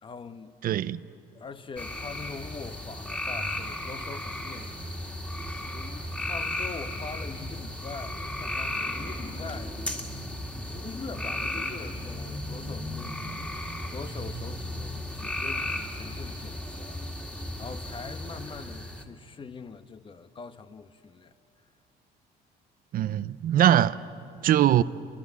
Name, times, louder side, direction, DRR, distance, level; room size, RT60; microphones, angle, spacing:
voice 1, 0.0-0.6 1.3-5.2 5.7-9.8 10.6-17.0 17.3-21.3, left 5 dB, 30° left, 1.1 m, -43 dB
voice 2, 0.6-1.0 22.9-24.0 24.4-24.8, right 11 dB, 55° right, 0.6 m, -21 dB
sound 1, 1.8-19.0, left 1 dB, 5° left, 2.3 m, -35 dB
29.0 x 23.5 x 8.3 m
cardioid pair, 110°, 17 cm